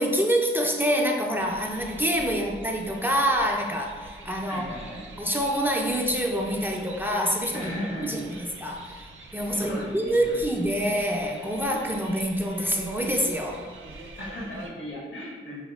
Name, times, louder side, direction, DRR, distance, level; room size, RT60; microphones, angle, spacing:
voice 1, 0.0-4.7 5.2-7.7 8.0-13.6, equal, 10° right, 0 dB, 0.4 m, -26 dB
sound 1, 1.4-14.7, right 3 dB, 80° right, 0.5 m, -45 dB
voice 2, 4.4-5.2 7.5-8.2 9.5-10.7 14.2-15.6, left 1 dB, 75° left, -5 dB, 1.2 m, -36 dB
4.7 x 2.3 x 2.3 m, 1.5 s
cardioid pair, 50°, 20 cm